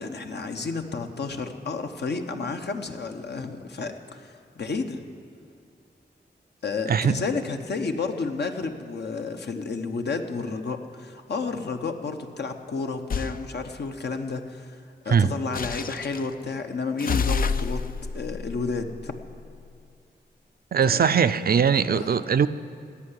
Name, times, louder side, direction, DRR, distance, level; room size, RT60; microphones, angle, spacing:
voice 1, 0.0-5.1 6.6-14.8 15.0-17.8 18.1-19.2 20.8-21.0 21.8-22.2, left 4 dB, 70° left, 5 dB, 1.0 m, -31 dB
sound 1, 13.1-13.4 15.5-16.3 17.0-19.6, left 5 dB, 55° left, 0.5 m, -29 dB
voice 2, 20.7-22.5, right 7 dB, 55° right, 12 dB, 0.5 m, -20 dB
17.0 x 5.7 x 9.9 m, 2.4 s
cardioid pair, 70°, 18 cm